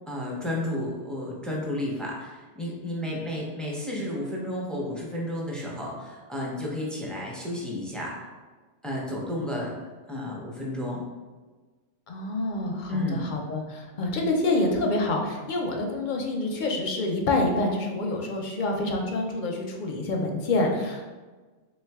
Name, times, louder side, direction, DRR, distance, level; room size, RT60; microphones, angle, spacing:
voice 1, 0.1-8.1 8.8-9.7 10.1-11.0 12.9-13.2, left 1 dB, ahead, -4 dB, 0.4 m, -32 dB
voice 2, 12.1-21.0, left 2 dB, 55° left, 1 dB, 0.5 m, -27 dB
3.4 x 3.1 x 3.4 m, 1.3 s
omnidirectional pair, 1.2 m